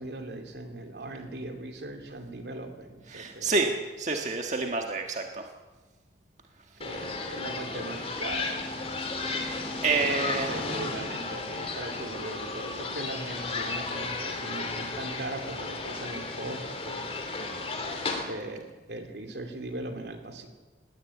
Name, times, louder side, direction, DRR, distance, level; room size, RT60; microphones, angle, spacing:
voice 1, 0.0-3.7 6.8-8.6 9.9-17.0 18.3-20.5, right 2 dB, 70° right, 5 dB, 2.8 m, -39 dB
voice 2, 3.1-5.5 9.3-9.6 9.8-10.5, right 3 dB, 40° right, 3 dB, 1.5 m, -28 dB
sound 1, 6.8-18.2, left 3 dB, 35° left, 3.2 m, -34 dB
20.0 x 17.0 x 8.4 m, 1.3 s
head